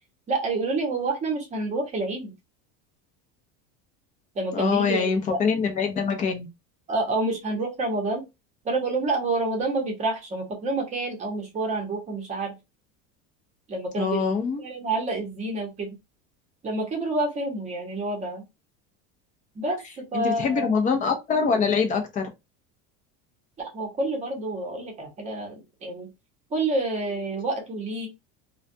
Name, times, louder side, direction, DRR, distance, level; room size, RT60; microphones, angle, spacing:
voice 1, 0.3-2.3 4.3-5.4 6.9-8.2 8.6-12.5 13.7-14.2 14.6-15.9 16.6-18.4 19.5-20.8 23.6-26.1 26.5-28.1, right 2 dB, 20° right, 0.8 m, -28 dB
voice 2, 4.5-6.5 14.0-14.6 20.1-22.3, left 5 dB, 20° left, 0.5 m, -24 dB
2.3 x 2.2 x 2.6 m
cardioid pair, 165°, 36 cm